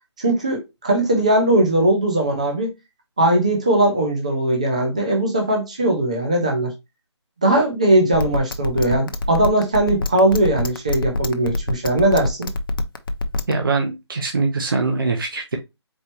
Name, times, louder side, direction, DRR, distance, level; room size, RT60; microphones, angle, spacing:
voice 1, 0.2-2.7 3.2-6.7 7.4-12.5, right 1 dB, 15° right, 0.5 m, -19 dB
sound 1, 8.1-13.5, left 2 dB, 50° left, 0.6 m, -24 dB
voice 2, 13.5-15.6, right 3 dB, 50° right, 0.9 m, -22 dB
4.4 x 3.1 x 2.9 m
hypercardioid pair, 180°, 15 cm